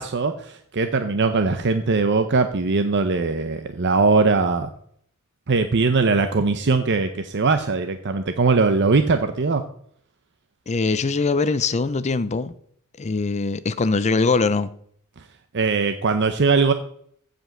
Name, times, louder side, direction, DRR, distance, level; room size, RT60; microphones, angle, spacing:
voice 1, 0.0-4.7 5.5-9.6 15.2-15.3 15.5-16.7, right 4 dB, 50° right, 0.7 m, -20 dB
voice 2, 10.7-12.5 13.0-14.7, left 4 dB, 30° left, 0.5 m, -22 dB
15.0 x 5.2 x 6.5 m
head